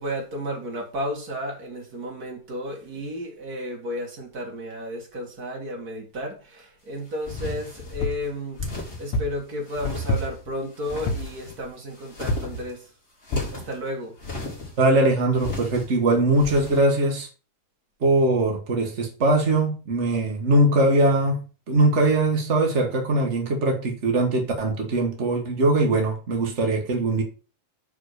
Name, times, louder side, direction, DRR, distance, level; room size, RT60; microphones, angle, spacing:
voice 1, 0.0-8.6 9.0-12.9 13.5-14.2, equal, 35° right, 2.0 m, -33 dB
sound 1, 7.2-8.1 8.6-9.1 9.7-10.3 10.8-11.6 12.0-12.7 13.2-13.8 14.2-14.8 15.4-15.8 16.3-16.8, left 3 dB, 20° left, 2.9 m, -34 dB
sound 2, 8.0-8.3 9.1-9.4 10.1-10.5 11.1-11.4 12.3-12.6 13.3-13.6 14.2-14.3 14.5-14.6, left 1 dB, 70° left, 2.5 m, -27 dB
voice 2, 14.8-17.3 18.0-21.4 21.7-27.2, right 2 dB, 85° right, 0.6 m, -21 dB
5.8 x 5.0 x 6.5 m
omnidirectional pair, 3.9 m